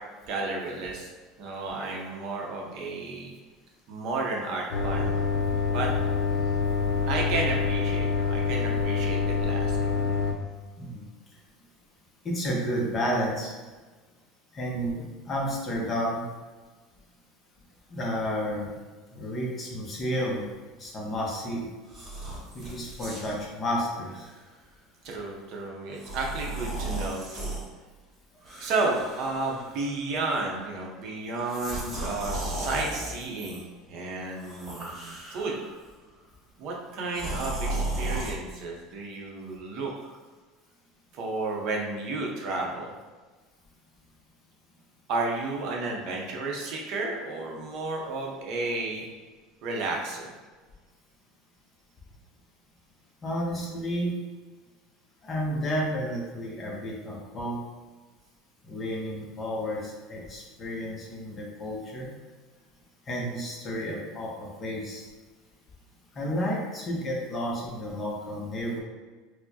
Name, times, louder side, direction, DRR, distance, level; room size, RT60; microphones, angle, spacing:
voice 1, 0.3-1.1 1.4-3.3 3.9-5.2 5.7-5.9 7.1-9.9 25.0-27.5 28.6-33.6 33.9-35.6 36.6-40.2 41.1-42.9 45.1-49.0 49.6-50.3, right 3 dB, 45° right, -1 dB, 0.6 m, -32 dB
sound 1, 4.7-10.3, left 5 dB, 75° left, 0.5 m, -26 dB
voice 2, 12.2-13.5 14.5-16.2 17.9-18.7 19.1-20.5 20.8-21.7 22.5-24.2 53.2-54.1 55.2-57.6 58.6-62.1 63.1-65.1 66.1-68.8, equal, 20° left, -3 dB, 0.6 m, -31 dB
sound 2, 21.9-23.4 24.1-24.3 25.9-27.7 28.4-29.9 30.1-30.6 31.4-33.6 34.3-35.7 37.1-38.3, right 2 dB, 15° right, 0.8 m, -35 dB
4.4 x 2.0 x 2.7 m, 1.3 s
cardioid pair, 165°, 0 cm